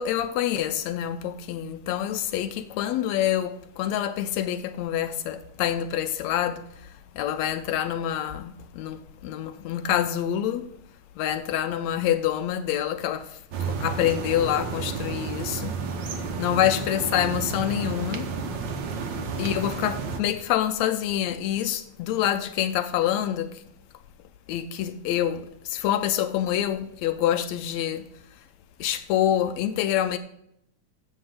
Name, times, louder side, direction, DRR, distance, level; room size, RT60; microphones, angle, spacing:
voice 1, 0.0-10.7 11.2-15.8 16.0-18.3 19.4-23.6 24.5-28.1 28.4-28.5 28.8-30.2, left 11 dB, 80° left, 1.7 m, -27 dB
sound 1, 13.5-20.2, right 5 dB, 80° right, 1.0 m, -31 dB
7.7 x 6.5 x 7.6 m
omnidirectional pair, 3.5 m